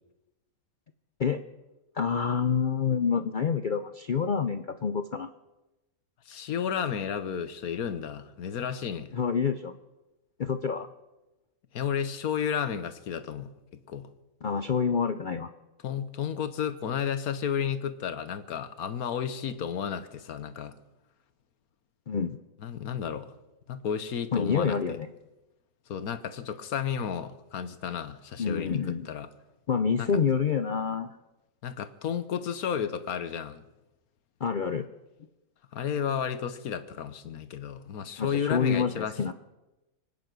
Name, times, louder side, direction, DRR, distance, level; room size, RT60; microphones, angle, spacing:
voice 1, 1.9-5.3 9.1-9.8 10.4-10.9 14.4-15.5 22.1-22.4 24.3-25.1 28.4-29.1 29.7-31.2 34.4-34.9 38.2-39.3, left 6 dB, 55° left, 10 dB, 0.5 m, -27 dB
voice 2, 6.3-9.1 11.7-13.5 13.9-14.1 15.8-20.7 22.6-23.3 23.7-25.0 25.9-29.3 30.0-30.1 31.6-33.6 35.7-39.3, left 8 dB, 85° left, 12 dB, 1.5 m, -32 dB
24.5 x 9.4 x 6.1 m, 1.0 s
omnidirectional pair, 1.5 m